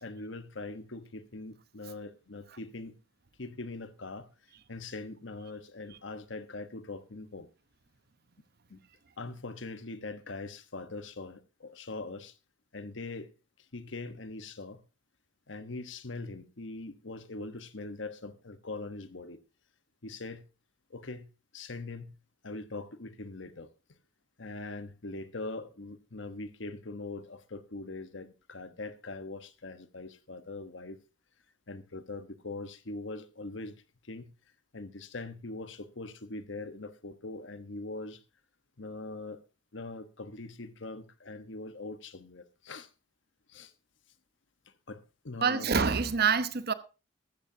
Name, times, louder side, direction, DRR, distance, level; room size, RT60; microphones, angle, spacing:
voice 1, 0.0-2.9 3.4-4.3 4.7-7.5 8.7-8.8 9.2-12.3 12.7-13.3 13.7-14.8 15.5-19.4 20.0-20.4 20.9-21.3 21.5-22.1 22.4-23.7 24.4-31.0 31.7-33.7 34.0-34.3 34.7-38.2 38.8-39.4 39.7-42.9 43.5-43.7 44.9-45.7, left 3 dB, 70° left, 1.2 m, -42 dB
voice 2, 45.4-46.7, right 5 dB, 55° right, 1.0 m, -26 dB
14.0 x 13.5 x 2.8 m
head